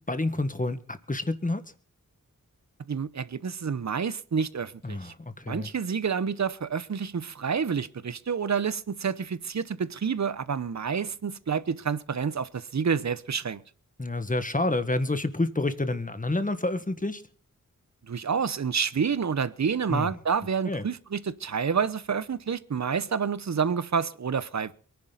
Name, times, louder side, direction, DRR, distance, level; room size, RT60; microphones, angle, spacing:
voice 1, 0.0-1.6 4.8-5.7 14.0-17.2 19.9-20.1 20.6-20.8, left 2 dB, 25° left, 1.7 m, -28 dB
voice 2, 2.9-5.1 5.5-13.6 18.0-24.7, right 6 dB, 60° right, 0.9 m, -28 dB
23.0 x 10.5 x 4.1 m
cardioid pair, 45°, 31 cm